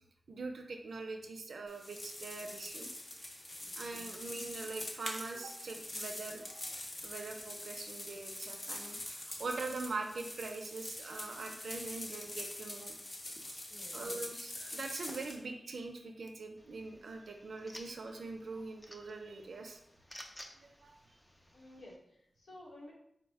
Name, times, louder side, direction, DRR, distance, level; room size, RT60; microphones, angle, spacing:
voice 1, 0.3-2.9 3.7-13.0 13.9-19.8 20.6-21.0, right 3 dB, 90° right, 3 dB, 0.5 m, -43 dB
sound 1, 1.7-15.4, left 1 dB, 40° left, 0.7 m, -44 dB
sound 2, 16.6-22.0, equal, 10° left, 0.4 m, -55 dB
voice 2, 21.5-22.9, left 1 dB, 85° left, -3 dB, 1.2 m, -53 dB
4.1 x 2.1 x 4.5 m, 0.73 s
wide cardioid pair, 115°, 0 cm